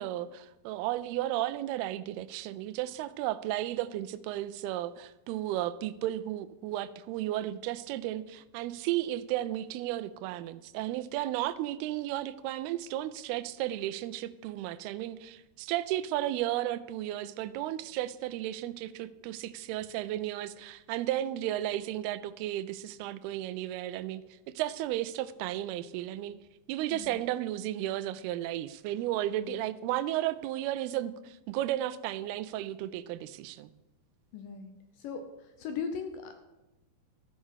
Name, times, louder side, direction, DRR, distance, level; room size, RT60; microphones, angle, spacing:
voice 1, 0.0-26.4 26.7-33.7, right 13 dB, 85° right, 2.5 m, -34 dB
voice 2, 34.3-34.7 35.0-36.4, left 6 dB, 75° left, 2.2 m, -38 dB
13.0 x 6.1 x 6.3 m
omnidirectional pair, 4.5 m